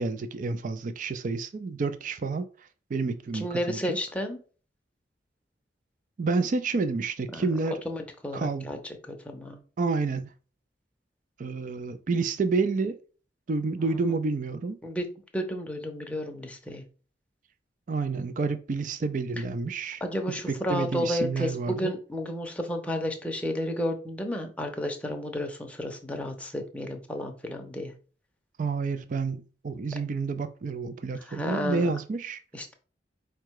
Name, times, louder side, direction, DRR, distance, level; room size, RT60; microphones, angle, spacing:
voice 1, 0.0-2.5 2.9-4.0 6.2-7.8 8.3-8.7 9.8-10.3 11.4-13.0 13.5-14.8 17.9-20.0 20.5-21.9 28.6-32.4, right 4 dB, 45° right, 0.4 m, -29 dB
voice 2, 3.3-4.4 7.3-7.6 7.8-8.8 9.1-9.6 13.9-14.0 14.8-15.1 15.3-16.8 20.0-27.9 31.1-31.9 32.5-32.7, left 1 dB, 10° left, 0.7 m, -32 dB
4.7 x 2.2 x 4.6 m
head